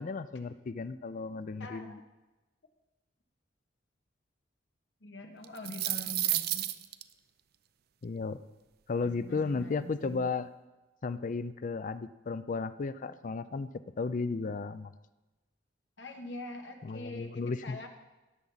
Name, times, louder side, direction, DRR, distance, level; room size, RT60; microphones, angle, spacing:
voice 1, 0.0-1.9 8.0-8.4 8.9-10.5 11.0-13.7 14.0-14.9 16.8-17.9, left 4 dB, 45° left, 14 dB, 0.5 m, -34 dB
voice 2, 1.6-2.0 5.0-6.8 9.2-10.2 16.0-17.9, left 1 dB, 70° left, 4 dB, 1.3 m, -44 dB
sound 1, 5.4-7.0, right 14 dB, 55° right, 0.5 m, -31 dB
17.0 x 7.1 x 4.0 m, 1.1 s
head